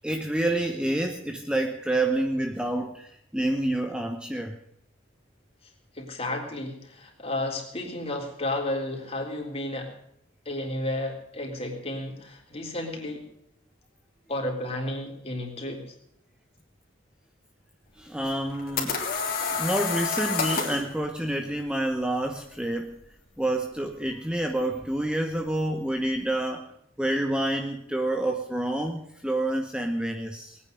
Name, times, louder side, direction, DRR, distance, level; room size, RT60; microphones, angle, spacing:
voice 1, 0.0-4.6 18.0-19.0 19.4-23.0 23.4-30.6, right 1 dB, 5° right, 4 dB, 1.0 m, -28 dB
voice 2, 5.9-9.9 10.5-13.2 14.3-15.9, left 1 dB, 30° left, 1 dB, 3.7 m, -32 dB
sound 1, 18.3-20.9, left 5 dB, 50° left, 3.0 m, -28 dB
20.5 x 9.5 x 6.7 m, 0.72 s
head